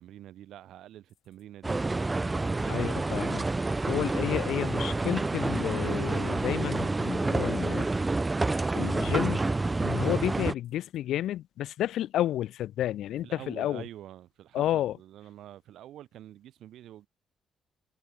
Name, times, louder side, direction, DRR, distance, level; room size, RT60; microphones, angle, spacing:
voice 1, 0.0-1.8 2.6-2.9 13.2-17.1, right 12 dB, 80° right, 1.1 m, -47 dB
sound 1, 1.1-1.4 1.7-1.8 2.0-2.9 3.2-3.5 3.8-3.9 4.1-4.2 4.4-4.7 5.0-5.3 5.6-6.2 6.5-7.1 7.4-7.7 8.0-8.3 8.5-8.6 8.8-9.5 9.7-10.1 10.3-11.0 11.2-11.3, left 10 dB, 60° left, 2.7 m, -59 dB
sound 2, 1.6-10.5, right 3 dB, 15° right, 0.4 m, -28 dB
voice 2, 2.7-3.4 3.9-7.9 8.7-9.4 9.8-13.8 14.5-15.0, left 12 dB, 80° left, 0.3 m, -31 dB
cardioid pair, 155°, 0 cm